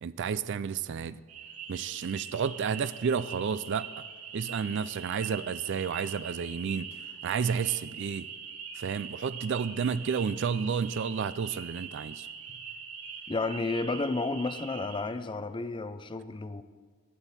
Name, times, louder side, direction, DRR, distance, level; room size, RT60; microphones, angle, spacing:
voice 1, 0.0-1.2 1.7-4.0 4.3-6.9 7.2-8.3 8.8-12.3, right 6 dB, 50° right, 16 dB, 0.3 m, -31 dB
sound 1, 1.3-15.0, right 6 dB, 80° right, 1.8 m, -42 dB
voice 2, 13.3-16.6, left 3 dB, 20° left, 12 dB, 0.4 m, -32 dB
22.0 x 8.9 x 4.2 m, 1.5 s
head